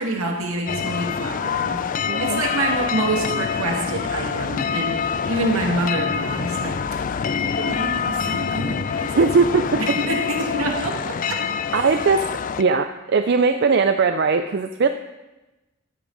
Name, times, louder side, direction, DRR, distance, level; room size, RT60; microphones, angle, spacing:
voice 1, 0.0-1.8 2.2-6.8 7.4-9.2 9.6-11.4 11.7-11.9, right 2 dB, 80° right, 1 dB, 2.0 m, -27 dB
sound 1, 0.7-12.6, left 6 dB, 35° left, 0.3 m, -26 dB
voice 2, 2.1-2.4 9.2-10.0 11.7-12.3 12.6-14.9, right 4 dB, 50° right, 8 dB, 0.4 m, -19 dB
13.5 x 9.9 x 4.0 m, 1.1 s
head